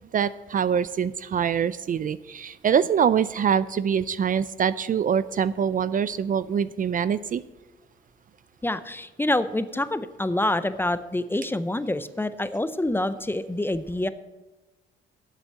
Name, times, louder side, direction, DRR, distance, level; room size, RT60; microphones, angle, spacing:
voice 1, 0.1-7.4, right 7 dB, 45° right, 16 dB, 0.4 m, -24 dB
voice 2, 8.6-14.1, left 1 dB, 10° left, 13 dB, 0.6 m, -26 dB
8.3 x 7.9 x 7.5 m, 1.1 s
cardioid pair, 90°, 20 cm